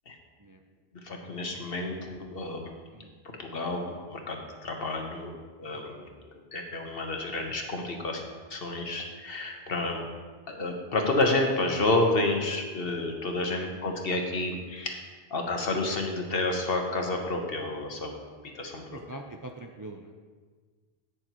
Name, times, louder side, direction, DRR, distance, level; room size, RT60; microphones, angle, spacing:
voice 1, 1.0-2.7 3.4-6.1 6.5-8.2 8.5-10.0 10.5-15.0 15.3-18.1 18.5-19.0, left 2 dB, 65° left, 2 dB, 1.4 m, -30 dB
voice 2, 5.7-6.2 9.9-10.0 13.4-14.0 18.9-20.3, right 1 dB, 25° right, 3 dB, 0.4 m, -45 dB
17.0 x 6.4 x 3.0 m, 1.5 s
omnidirectional pair, 1.1 m